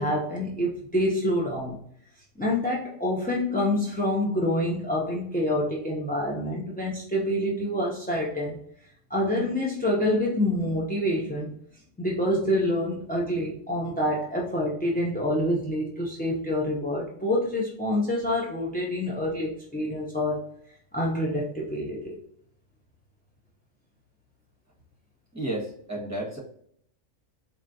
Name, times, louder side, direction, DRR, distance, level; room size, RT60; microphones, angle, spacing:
voice 1, 0.0-1.8 2.4-8.6 9.1-11.5 12.0-20.4 20.9-22.2, left 1 dB, 15° left, -3 dB, 0.3 m, -27 dB
voice 2, 25.3-26.4, right 1 dB, 15° right, -4 dB, 1.4 m, -32 dB
4.4 x 3.0 x 2.6 m, 0.67 s
omnidirectional pair, 1.3 m